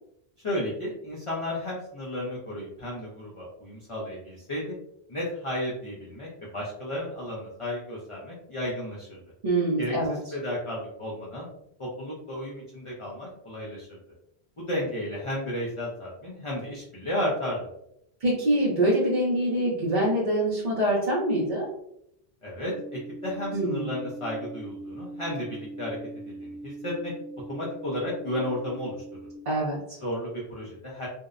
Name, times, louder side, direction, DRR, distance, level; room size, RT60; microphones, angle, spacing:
voice 1, 0.4-4.7 5.1-9.2 9.8-10.0 10.3-11.5 11.8-13.9 14.6-17.7 22.4-26.0 26.3-27.1 27.5-29.0 30.0-31.1, left 1 dB, 40° left, -5 dB, 0.5 m, -33 dB
voice 2, 9.4-10.2 18.2-21.7 23.5-23.9 29.5-30.0, right 1 dB, 50° right, -6 dB, 0.6 m, -25 dB
sound 1, 22.6-29.4, right 2 dB, 60° left, 0.9 m, -41 dB
2.6 x 2.0 x 2.4 m, 0.76 s
omnidirectional pair, 1.1 m